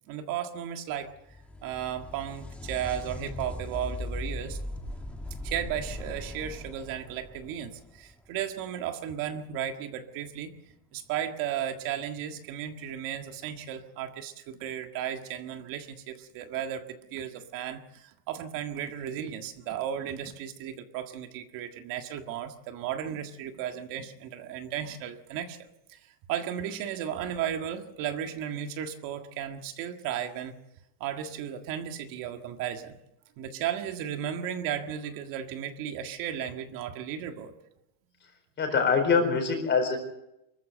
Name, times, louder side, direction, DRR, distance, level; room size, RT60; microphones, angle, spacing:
voice 1, 0.1-1.4 1.6-4.6 5.4-10.5 10.9-30.5 31.0-33.0 33.4-37.5, right 9 dB, 50° right, 6 dB, 1.8 m, -35 dB
sound 1, 1.1-8.6 12.0-12.1 13.1-13.2, left 1 dB, 5° left, 1.9 m, -39 dB
voice 2, 38.6-40.0, left 5 dB, 25° left, 4 dB, 4.4 m, -24 dB
24.5 x 14.5 x 7.9 m, 0.86 s
cardioid pair, 170°, 44 cm